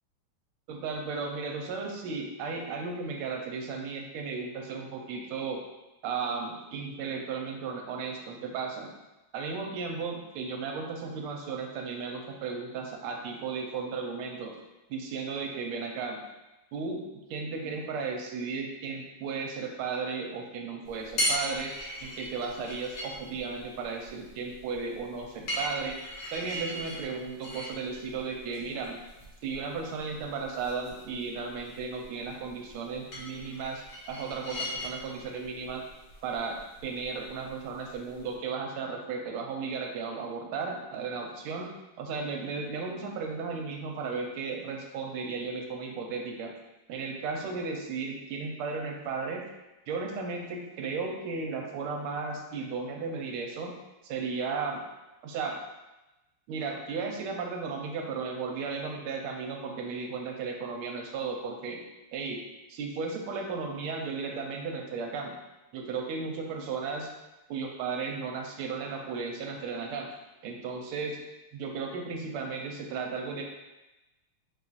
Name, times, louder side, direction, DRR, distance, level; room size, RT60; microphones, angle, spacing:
voice 1, 0.7-5.6 6.0-8.9 9.3-14.6 14.9-16.2 16.7-17.0 17.3-21.7 22.0-26.0 26.3-29.0 29.4-35.8 36.2-41.7 42.0-46.5 46.9-49.5 49.9-53.7 54.0-54.8 55.2-55.6 56.5-61.8 62.1-62.4 62.7-65.3 65.7-67.1 67.5-70.1 70.4-71.2 71.5-73.4, right 4 dB, 85° right, 1 dB, 1.5 m, -35 dB
sound 1, 20.8-38.3, equal, 60° left, 1.6 m, -39 dB
4.4 x 2.4 x 4.0 m, 1.0 s
omnidirectional pair, 2.4 m